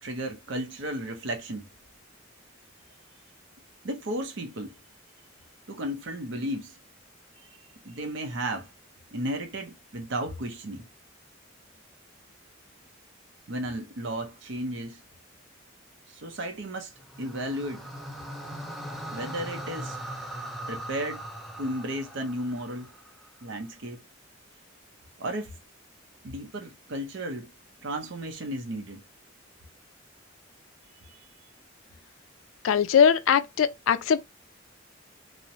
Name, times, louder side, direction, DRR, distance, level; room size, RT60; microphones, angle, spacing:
voice 1, 0.0-1.6 3.8-4.8 5.7-6.8 7.4-7.5 7.8-8.7 9.1-10.9 13.5-15.0 16.1-16.9 17.2-17.9 19.1-20.0 20.7-21.3 21.6-22.9 23.4-24.0 25.2-25.5 26.2-27.5 27.8-29.0 31.0-31.3, right 1 dB, 60° right, 0.6 m, -34 dB
sound 1, 17.0-23.3, right 1 dB, ahead, 0.4 m, -39 dB
voice 2, 32.6-34.2, left 7 dB, 80° left, 0.4 m, -21 dB
3.0 x 2.0 x 2.6 m
head